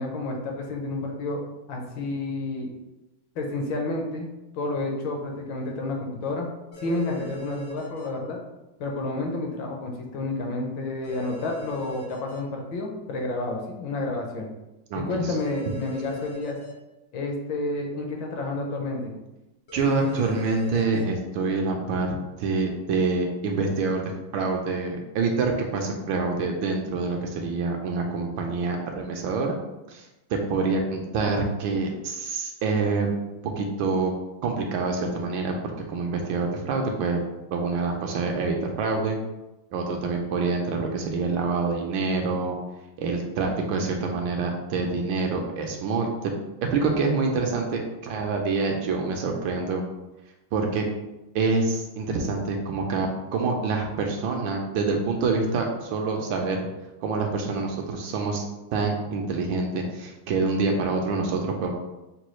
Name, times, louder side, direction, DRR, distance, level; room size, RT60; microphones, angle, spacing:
voice 1, 0.0-1.4 1.7-2.7 3.4-4.3 4.5-6.5 6.8-8.4 8.8-14.5 14.9-16.6 17.1-19.2, left 2 dB, 75° left, 1 dB, 1.3 m, -30 dB
sound 1, 6.7-8.1 11.0-12.4 15.4-16.7 19.7-21.0, equal, 50° left, 0.6 m, -39 dB
voice 2, 14.9-15.2 19.7-22.1 22.4-29.6 29.9-30.0 30.3-33.1 33.6-34.1 34.4-35.5 35.9-37.2 37.5-39.2 39.7-42.6 43.0-46.3 46.7-49.8 50.5-50.8 51.3-56.6 57.0-58.4 58.7-61.7, right 4 dB, 75° right, 2 dB, 1.3 m, -26 dB
6.1 x 2.3 x 3.0 m, 1.0 s
omnidirectional pair, 2.3 m